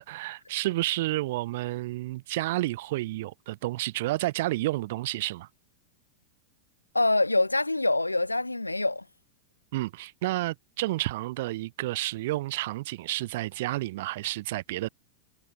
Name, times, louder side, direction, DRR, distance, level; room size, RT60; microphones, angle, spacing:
voice 1, 0.0-5.5 9.7-14.9, right 18 dB, 50° right, 0.9 m, -30 dB
voice 2, 6.9-9.0, left 2 dB, 85° left, 1.6 m, -25 dB
figure-of-eight pair, 90°, 0 cm